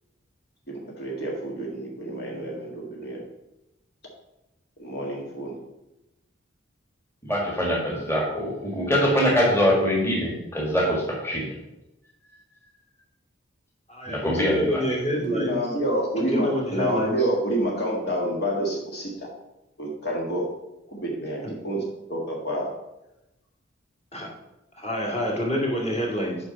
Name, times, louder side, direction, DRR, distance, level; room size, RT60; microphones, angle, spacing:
voice 1, 0.7-3.2 4.8-5.6 15.2-19.3 19.8-20.5 20.9-22.7, right 1 dB, 55° left, -2 dB, 1.8 m, -28 dB
voice 2, 7.3-11.5 14.1-14.8, equal, 15° left, -3 dB, 1.8 m, -23 dB
voice 3, 13.9-15.6 16.3-17.3 21.4-21.5 24.1-24.3 24.8-26.4, left 1 dB, 35° left, -2 dB, 2.4 m, -27 dB
8.6 x 5.3 x 5.3 m, 0.92 s
head